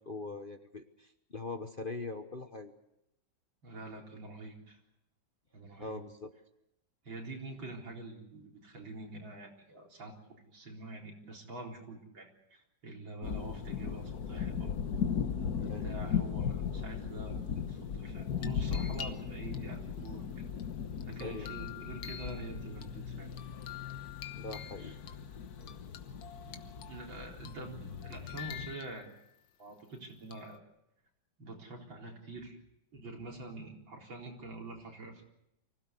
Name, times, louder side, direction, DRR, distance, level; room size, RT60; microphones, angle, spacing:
voice 1, 0.0-2.7 5.8-6.3 15.6-15.9 21.2-21.5 24.3-25.0, left 3 dB, 35° left, 7 dB, 1.0 m, -42 dB
voice 2, 3.6-4.8 5.5-6.0 7.0-14.7 15.3-20.4 21.0-23.4 24.8-25.0 26.4-29.1 29.6-30.6 31.4-32.6 32.9-35.2, right 2 dB, 80° right, 0 dB, 4.8 m, -46 dB
sound 1, 13.2-28.7, left 7 dB, 55° left, 1.6 m, -37 dB
sound 2, 18.2-19.6 20.1-22.9 23.3-25.2 25.6-27.1 27.5-27.7 28.0-29.3 30.3-30.6, left 9 dB, 85° left, 1.9 m, -48 dB
25.0 x 16.5 x 8.3 m, 0.84 s
omnidirectional pair, 2.1 m